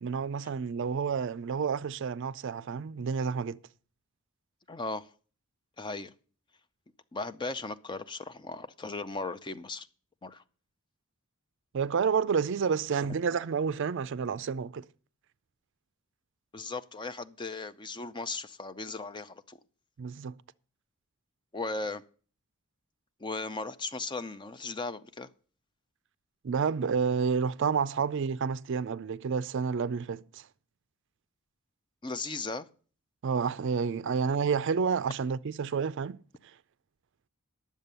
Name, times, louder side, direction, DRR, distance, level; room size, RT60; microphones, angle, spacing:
voice 1, 0.0-3.6 11.7-14.9 20.0-20.4 26.4-30.5 33.2-36.2, right 6 dB, 55° right, 0.4 m, -29 dB
voice 2, 4.7-5.1 5.8-6.1 7.1-9.9 10.2-10.4 16.5-19.6 21.5-22.0 23.2-25.3 32.0-32.7, left 3 dB, 20° left, 0.5 m, -37 dB
10.5 x 7.4 x 6.7 m
head